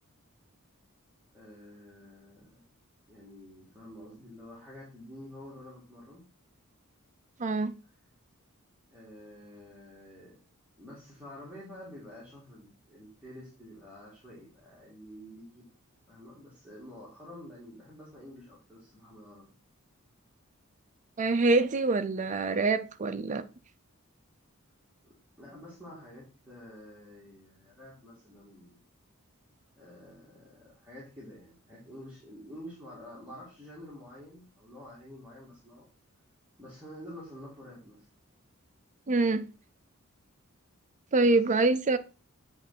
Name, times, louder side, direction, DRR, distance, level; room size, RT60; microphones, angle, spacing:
voice 1, 1.3-2.6 3.1-6.2 8.9-10.4 10.8-15.7 16.1-19.5 25.0-28.9 29.8-35.9 36.6-38.1 41.2-41.3, left 1 dB, 5° right, 1.9 m, -49 dB
voice 2, 7.4-7.8 21.2-23.4 39.1-39.5 41.1-42.0, right 3 dB, 35° right, 0.5 m, -25 dB
8.0 x 3.1 x 4.0 m
head